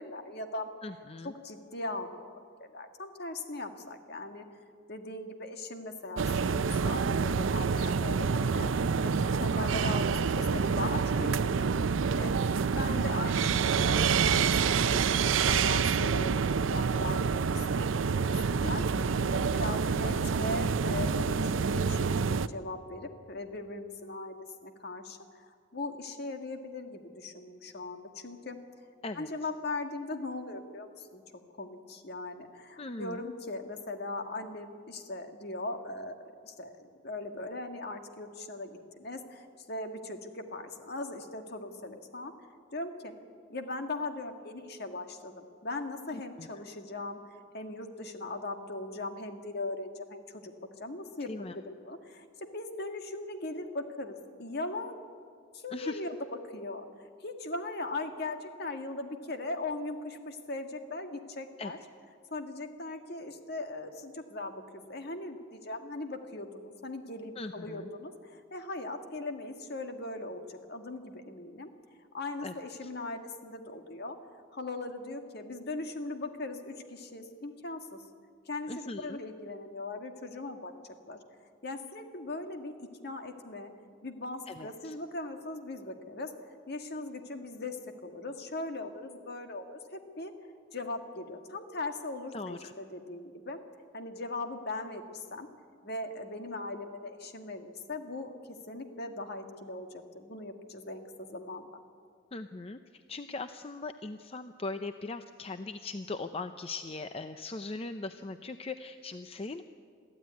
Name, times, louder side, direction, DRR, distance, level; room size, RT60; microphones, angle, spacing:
voice 1, 0.0-0.7 1.4-2.3 2.6-4.4 4.9-8.7 9.0-12.3 12.7-18.1 18.5-18.8 19.3-28.6 29.1-31.2 31.6-42.3 42.7-43.1 43.5-47.2 47.5-50.5 50.8-54.9 55.5-56.2 56.5-56.8 57.2-61.8 62.3-71.7 72.1-74.2 74.5-77.9 78.4-80.7 81.1-81.2 81.6-82.7 83.0-83.7 84.0-86.3 86.7-90.3 90.7-93.6 93.9-95.5 95.8-98.4 98.7-99.9 100.1-101.7, left 2 dB, 55° left, 6 dB, 1.8 m, -39 dB
voice 2, 0.8-1.3 9.8-9.9 18.6-19.3 29.0-29.3 32.8-33.3 46.1-46.5 51.3-51.6 55.7-56.0 61.6-61.7 67.4-67.9 72.4-72.5 72.8-72.9 78.7-79.2 84.5-85.0 92.3-92.7 102.3-109.6, left 3 dB, 30° left, 9 dB, 0.6 m, -40 dB
sound 1, 6.2-22.5, right 5 dB, 85° right, 0.5 m, -27 dB
22.5 x 14.5 x 9.5 m, 2.2 s
head